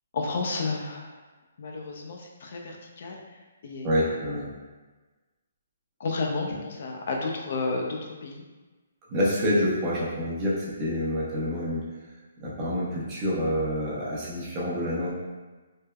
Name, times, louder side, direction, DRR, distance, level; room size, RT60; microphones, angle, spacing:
voice 1, 0.1-1.2 1.6-3.2 3.6-4.2 6.0-8.4, left 3 dB, 55° left, 1 dB, 0.4 m, -32 dB
voice 2, 3.8-4.5 9.1-11.8 12.4-15.1, equal, 20° right, -7 dB, 0.7 m, -27 dB
3.3 x 2.0 x 2.2 m, 1.3 s
hypercardioid pair, 160°, 0 cm